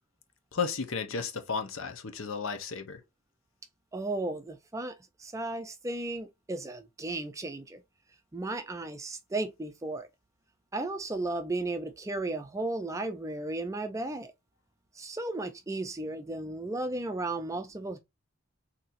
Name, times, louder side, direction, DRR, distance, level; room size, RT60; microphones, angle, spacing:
voice 1, 0.5-3.0, left 5 dB, 70° left, 0.7 m, -33 dB
voice 2, 3.9-7.8 8.3-10.1 10.7-14.3 15.0-18.0, right 2 dB, 15° right, 0.4 m, -35 dB
4.1 x 2.8 x 2.5 m
head